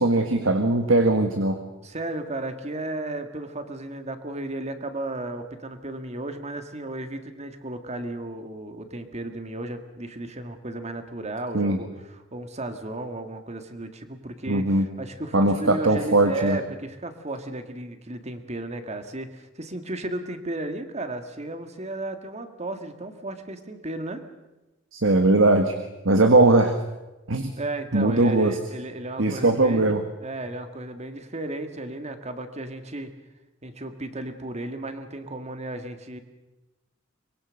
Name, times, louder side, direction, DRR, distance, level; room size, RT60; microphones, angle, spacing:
voice 1, 0.0-1.6 11.5-11.8 14.5-14.8 15.3-16.6 24.9-25.7 26.0-26.8 27.3-27.5 27.9-28.6 29.2-30.0, right 2 dB, 75° right, 7 dB, 1.6 m, -20 dB
voice 2, 1.8-24.2 27.6-33.1 33.6-36.2, right 2 dB, 35° right, 8 dB, 1.9 m, -34 dB
24.0 x 22.0 x 6.5 m, 1.0 s
head